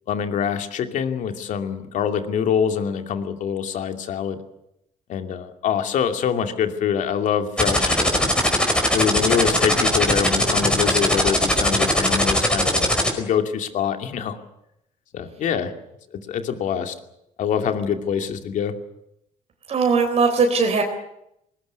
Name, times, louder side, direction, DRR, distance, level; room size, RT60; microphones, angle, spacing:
voice 1, 0.1-4.4 5.1-8.3 8.9-14.4 15.1-15.7 16.1-16.9 17.4-18.8, left 8 dB, 60° left, 7 dB, 2.6 m, -25 dB
sound 1, 7.6-13.1, left 1 dB, 5° left, 5.0 m, -19 dB
voice 2, 19.7-20.8, right 4 dB, 45° right, 4 dB, 3.7 m, -19 dB
20.5 x 19.5 x 9.5 m, 0.81 s
cardioid pair, 115°, 14 cm